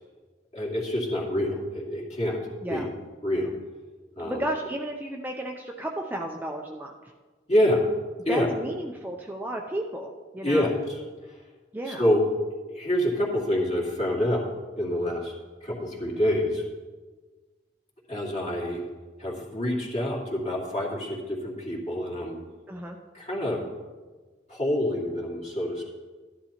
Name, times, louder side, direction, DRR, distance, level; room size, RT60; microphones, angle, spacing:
voice 1, 0.5-2.4 2.7-2.8 3.2-3.5 4.2-4.4 7.5-7.9 8.2-8.5 10.4-11.0 11.3-11.4 11.9-12.2 12.7-14.5 14.8-15.3 15.6-16.6 18.1-18.9 19.2-22.4 23.1-23.6 24.5-25.8, left 1 dB, 40° left, -3 dB, 2.3 m, -26 dB
voice 2, 4.2-6.9 8.3-10.7 11.7-12.0 22.7-23.0, right 1 dB, 10° right, 1 dB, 0.5 m, -33 dB
13.0 x 10.5 x 2.9 m, 1.3 s
head